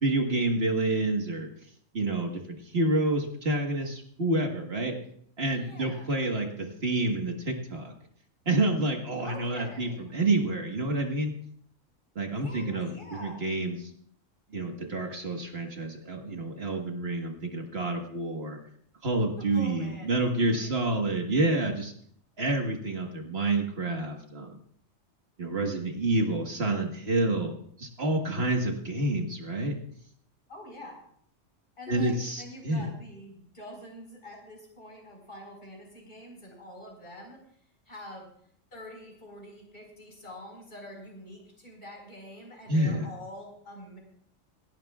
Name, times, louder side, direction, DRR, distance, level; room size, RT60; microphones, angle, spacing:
voice 1, 0.0-1.5 1.9-4.9 5.4-7.9 8.5-11.3 12.2-13.9 14.5-18.6 19.0-21.9 22.4-24.6 25.4-27.5 27.8-29.7 31.9-32.9 42.7-43.1, right 2 dB, 55° right, 3 dB, 1.8 m, -28 dB
voice 2, 5.4-6.3 9.2-10.1 12.3-13.5 19.5-20.8 30.5-31.0 31.8-37.4 37.8-38.3 38.7-44.0, equal, 45° left, -1 dB, 5.0 m, -46 dB
27.0 x 11.5 x 2.4 m, 0.63 s
omnidirectional pair, 1.3 m